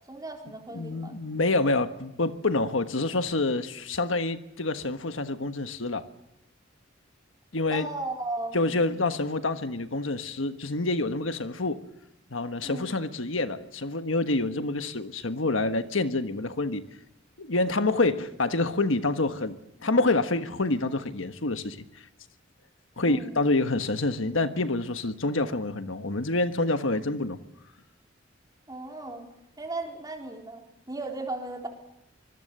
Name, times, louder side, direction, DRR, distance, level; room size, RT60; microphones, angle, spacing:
voice 1, 0.1-1.2 7.7-8.8 12.6-13.0 23.0-23.4 28.7-29.3 29.6-31.7, right 2 dB, 20° right, 2 dB, 3.9 m, -36 dB
voice 2, 0.7-6.0 7.5-7.9 8.5-11.8 12.3-16.8 17.4-21.8 23.0-27.4, left 2 dB, 85° left, 9 dB, 1.4 m, -27 dB
25.5 x 21.0 x 6.8 m, 0.86 s
head